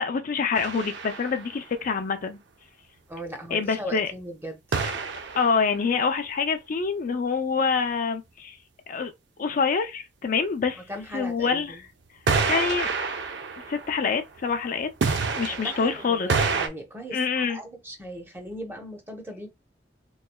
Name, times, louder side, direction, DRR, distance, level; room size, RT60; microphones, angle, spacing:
voice 1, 0.0-2.4 3.5-4.1 5.3-8.6 8.9-9.1 9.4-10.8 11.1-11.8 12.5-12.9 13.7-14.9 15.4-16.3 17.1-17.6, left 5 dB, 50° left, 0.4 m, -26 dB
sound 1, 0.5-1.6 4.7-5.8 12.3-14.6 15.0-16.7, right 4 dB, 85° right, 0.6 m, -28 dB
voice 2, 3.1-4.8 10.9-11.8 15.6-19.5, equal, 15° right, 0.8 m, -38 dB
3.6 x 3.1 x 2.2 m
head